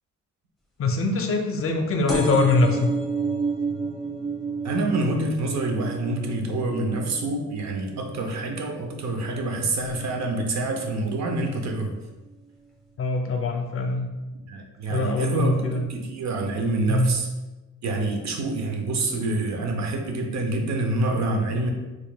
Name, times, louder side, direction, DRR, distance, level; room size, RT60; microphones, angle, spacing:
voice 1, 0.8-2.9 13.0-14.1 14.9-15.9 16.9-17.2, left 3 dB, 45° left, 4 dB, 0.6 m, -23 dB
sound 1, 2.1-9.3 9.8-10.3 11.1-11.2 11.4-11.5 11.7-11.8, right 4 dB, ahead, 0.9 m, -31 dB
voice 2, 4.6-11.9 14.5-17.3 17.8-21.7, right 2 dB, 65° right, 3 dB, 0.7 m, -27 dB
4.5 x 3.0 x 2.2 m, 1.1 s
cardioid pair, 90°, 30 cm